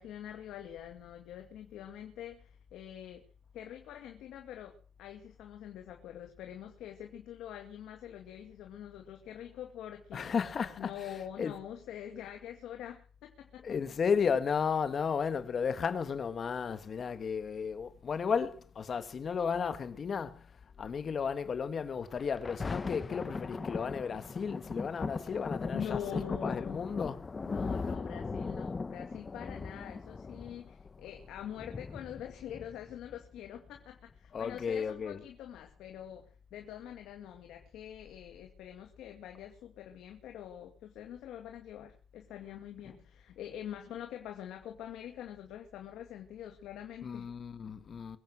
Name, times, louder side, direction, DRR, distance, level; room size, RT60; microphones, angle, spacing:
voice 1, 0.0-3.2 3.5-10.3 10.8-13.7 25.7-26.8 27.4-47.3, left 10 dB, 85° left, 2.2 m, -45 dB
voice 2, 10.1-11.5 13.6-27.3 34.3-35.2 42.8-43.0 47.0-48.2, left 6 dB, 50° left, 1.6 m, -34 dB
Thunder, 22.1-33.1 33.8-33.9, left 4 dB, 30° left, 0.8 m, -38 dB
23.0 x 9.2 x 6.2 m
cardioid pair, 90°, 0 cm